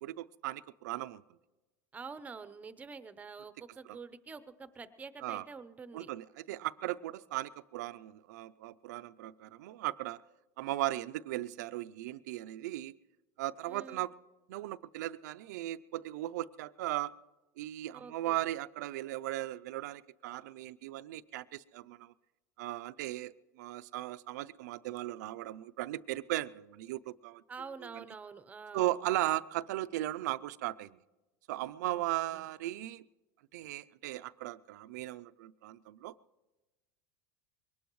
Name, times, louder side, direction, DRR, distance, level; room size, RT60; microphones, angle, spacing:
voice 1, 0.0-1.2 3.9-4.0 5.2-5.5 5.9-10.2 10.6-13.0 13.4-14.1 14.5-17.1 17.6-22.1 22.6-27.4 27.9-28.0 28.7-31.0 31.5-33.0 33.5-36.1, right 15 dB, 80° right, 14 dB, 0.5 m, -37 dB
voice 2, 1.9-6.1 13.7-14.0 17.9-18.4 27.5-28.9 31.8-32.1 32.3-32.4, right 5 dB, 15° right, 13 dB, 0.7 m, -47 dB
22.5 x 19.0 x 3.1 m, 1.1 s
supercardioid pair, 130°, 9 cm